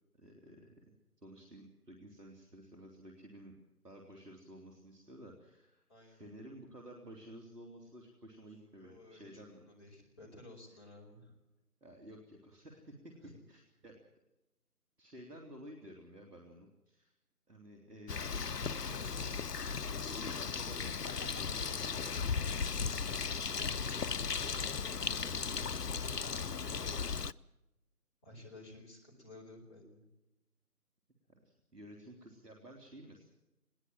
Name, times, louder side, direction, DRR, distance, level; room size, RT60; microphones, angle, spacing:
voice 1, 0.1-0.8 1.2-3.5 3.8-9.6 11.8-14.0 15.0-17.1 17.5-19.4 19.9-22.5 31.4-33.3, right 1 dB, 80° right, 1 dB, 3.5 m, -53 dB
voice 2, 5.9-6.3 8.8-11.4 13.2-13.4 23.8-24.1 24.5-26.4 26.7-27.1 28.2-30.1, left 1 dB, 15° left, -3 dB, 4.7 m, -55 dB
Bird, 18.1-27.3, left 5 dB, 85° left, 0.8 m, -36 dB
21.5 x 17.5 x 7.5 m, 0.93 s
figure-of-eight pair, 165°, 47 cm